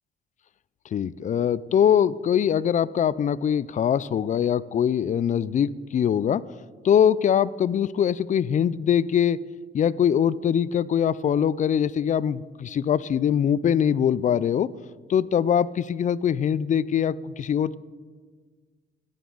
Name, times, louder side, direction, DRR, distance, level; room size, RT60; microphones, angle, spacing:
voice 1, 0.9-6.4 6.8-9.4 9.7-14.7 15.1-17.8, left 8 dB, 40° left, 20 dB, 0.4 m, -22 dB
14.0 x 10.5 x 3.9 m, 1.5 s
cardioid pair, 90°, 20 cm